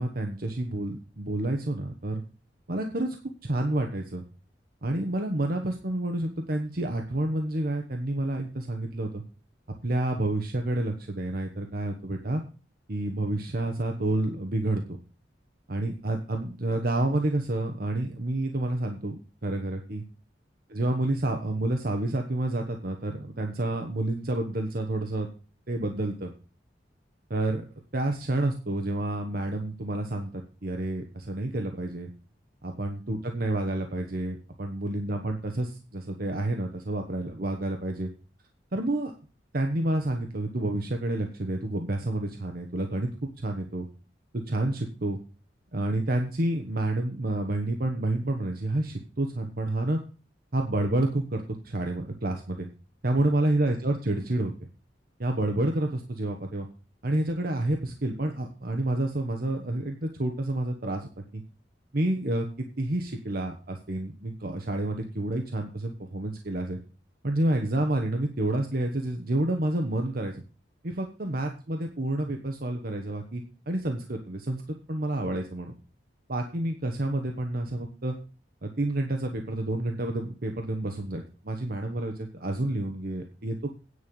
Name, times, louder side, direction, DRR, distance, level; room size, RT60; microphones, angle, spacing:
voice 1, 0.0-2.2 2.7-3.2 3.4-4.2 4.8-9.2 9.8-12.4 12.9-15.0 15.7-20.0 20.7-25.3 25.7-26.3 27.3-27.6 27.9-30.3 30.6-32.1 32.6-38.1 38.7-39.1 39.5-43.9 44.3-45.2 45.7-50.0 50.5-52.7 53.0-54.5 55.2-56.7 57.0-61.4 61.9-66.8 67.2-70.4 70.8-74.6 74.9-75.7 76.3-78.1 78.6-83.7, right 1 dB, 55° right, 3 dB, 1.2 m, -29 dB
9.7 x 5.7 x 7.1 m, 0.35 s
head